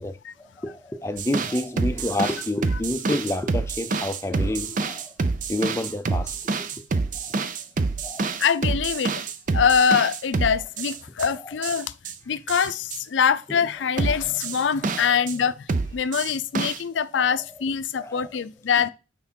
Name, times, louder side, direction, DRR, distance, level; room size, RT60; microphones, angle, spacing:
voice 1, 0.0-5.1 5.5-6.4 7.2-7.3 8.0-8.4 11.4-11.5 14.9-15.1 17.2-17.3 18.0-18.3, left 1 dB, 15° left, 0.4 m, -29 dB
sound 1, 1.2-11.3 11.6-12.1 12.5-13.0 14.0-15.3 15.7-16.8, right 4 dB, 45° right, 0.5 m, -27 dB
voice 2, 8.4-9.2 9.5-11.9 12.3-18.9, left 7 dB, 90° left, 0.5 m, -24 dB
5.9 x 4.5 x 4.4 m
head